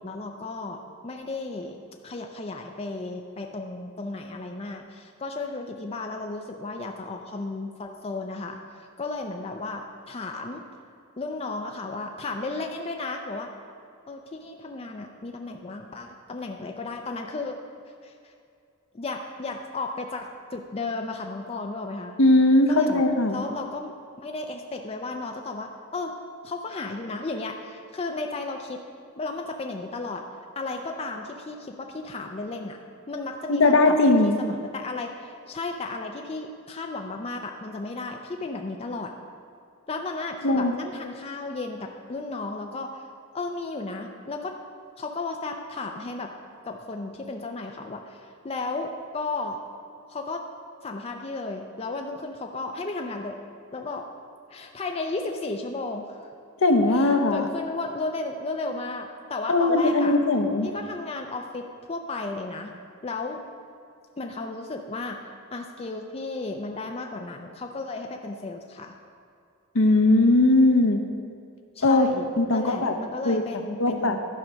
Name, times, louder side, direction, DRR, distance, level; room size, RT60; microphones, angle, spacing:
voice 1, 0.0-1.8 2.0-10.6 11.2-13.5 14.1-17.5 18.0-18.3 18.9-22.2 22.7-23.0 23.3-23.9 24.2-26.2 26.4-28.8 29.2-30.2 30.6-32.8 33.1-34.0 34.2-39.1 39.9-43.0 43.3-44.6 45.0-46.3 46.6-49.6 50.1-50.4 50.8-53.4 53.7-54.0 54.5-56.2 56.9-60.1 60.6-62.7 63.0-63.4 64.2-65.2 65.5-68.9 71.8-74.2, left 3 dB, 30° left, 3 dB, 0.5 m, -34 dB
voice 2, 22.2-23.4 33.5-34.4 40.4-40.7 56.6-57.4 59.5-60.7 69.7-71.0 71.8-72.1 72.4-72.9 73.3-73.4 73.8-74.2, left 2 dB, 65° left, 6 dB, 0.8 m, -19 dB
11.5 x 4.7 x 6.2 m, 2.4 s
head